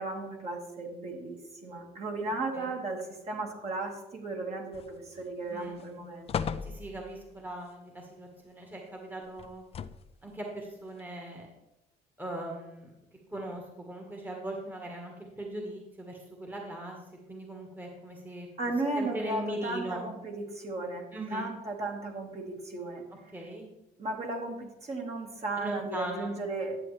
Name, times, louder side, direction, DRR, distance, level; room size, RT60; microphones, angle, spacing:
voice 1, 0.0-6.5 18.6-23.0 24.0-26.8, right 2 dB, 40° right, 1 dB, 1.9 m, -35 dB
sound 1, 4.7-5.3 5.7-5.8 6.3-7.3 9.4-10.2 11.0-11.1, left 7 dB, 35° left, 0.4 m, -36 dB
voice 2, 5.5-6.0 6.6-9.6 10.2-11.5 12.2-12.9 13.3-17.0 17.3-18.5 18.9-20.0 21.1-21.5 23.3-23.6 25.6-26.3, right 1 dB, 10° right, 0 dB, 1.4 m, -39 dB
10.5 x 7.4 x 3.2 m, 0.94 s
cardioid pair, 110°, 17 cm